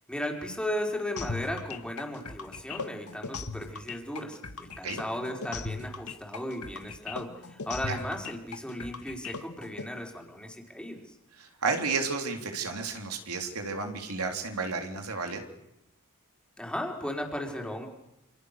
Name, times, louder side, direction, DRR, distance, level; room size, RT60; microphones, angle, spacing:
voice 1, 0.1-11.1 16.6-17.9, left 1 dB, 5° left, 1 dB, 4.4 m, -36 dB
sound 1, 1.2-9.8, left 4 dB, 85° left, 1.8 m, -38 dB
voice 2, 11.4-15.4, right 4 dB, 85° right, 4 dB, 3.6 m, -32 dB
28.0 x 27.0 x 6.7 m, 0.87 s
head